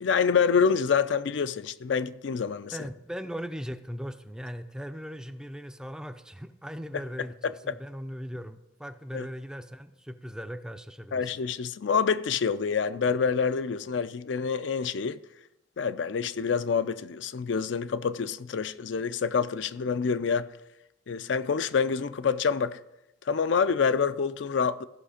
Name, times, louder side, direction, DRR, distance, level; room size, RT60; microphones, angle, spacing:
voice 1, 0.0-2.7 7.4-7.8 9.1-9.3 11.1-15.2 15.8-20.5 21.1-22.8 23.3-24.8, left 6 dB, 70° left, 0.4 m, -27 dB
voice 2, 2.7-11.3, equal, 5° right, 0.4 m, -39 dB
15.0 x 5.8 x 5.0 m
head